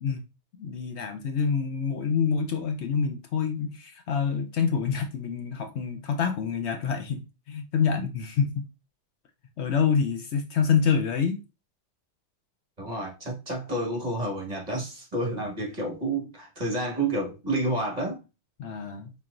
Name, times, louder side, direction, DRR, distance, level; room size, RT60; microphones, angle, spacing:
voice 1, 0.6-8.6 9.6-11.4 18.6-19.1, left 6 dB, 65° left, 0.9 m, -27 dB
voice 2, 12.8-18.2, right 2 dB, 35° right, 1.5 m, -30 dB
4.3 x 3.8 x 2.5 m
omnidirectional pair, 1.3 m